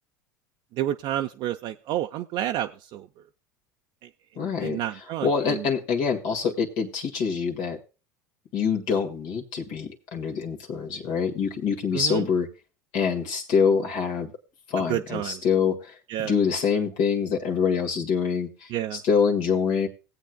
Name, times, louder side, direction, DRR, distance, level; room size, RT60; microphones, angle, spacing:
voice 1, 0.8-3.1 4.4-5.6 11.9-12.2 14.9-15.4 16.1-16.3 18.7-19.0, right 12 dB, 55° right, 4 dB, 0.6 m, -30 dB
voice 2, 4.4-7.8 8.5-12.5 12.9-14.3 14.7-19.9, left 6 dB, 65° left, 1 dB, 1.8 m, -25 dB
19.0 x 8.2 x 2.3 m, 0.32 s
hypercardioid pair, 85°, 10 cm